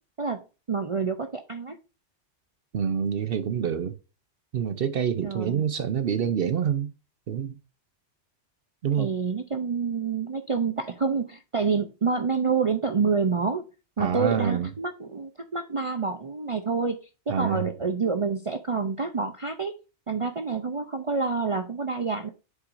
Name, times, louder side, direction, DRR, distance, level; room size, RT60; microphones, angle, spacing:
voice 1, 0.2-1.8 5.2-5.6 9.0-13.6 14.0-17.0 17.3-19.7 20.1-22.3, right 5 dB, 40° right, 0.5 m, -28 dB
voice 2, 2.7-3.9 4.5-6.9 7.3-7.6 8.8-9.1 14.0-14.7 17.3-17.7, right 8 dB, 60° right, 0.8 m, -26 dB
7.6 x 5.8 x 2.5 m
omnidirectional pair, 1.2 m